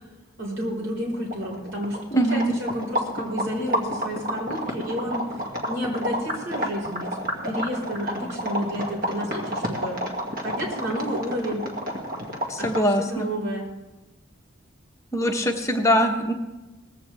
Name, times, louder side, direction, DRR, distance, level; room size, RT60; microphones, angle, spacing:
voice 1, 0.4-5.2 5.7-7.1 7.4-10.0 10.4-11.6 12.6-13.7, equal, 75° right, -1 dB, 4.9 m, -30 dB
sound 1, 1.0-1.1 1.2-13.0, equal, 45° right, 2.2 m, -30 dB
voice 2, 2.1-2.5 12.5-13.3 15.1-16.3, equal, 15° left, 3 dB, 1.0 m, -22 dB
18.5 x 15.5 x 3.4 m, 1.1 s
head